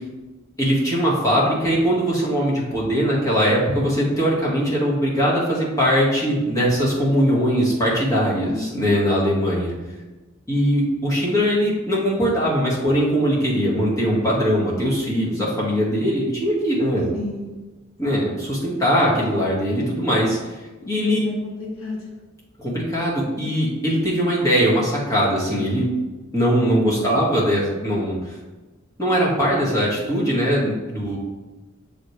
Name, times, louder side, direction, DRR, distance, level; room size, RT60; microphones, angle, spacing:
voice 1, 0.6-9.7 10.5-17.0 18.0-20.6 20.9-21.2 22.6-25.9 26.3-28.4 29.0-31.2, equal, 15° left, -6 dB, 1.8 m, -21 dB
voice 2, 8.4-9.0 17.1-17.6 21.0-22.0 26.8-27.1, left 2 dB, 85° left, -2 dB, 1.6 m, -31 dB
6.6 x 5.1 x 3.2 m, 1.2 s
head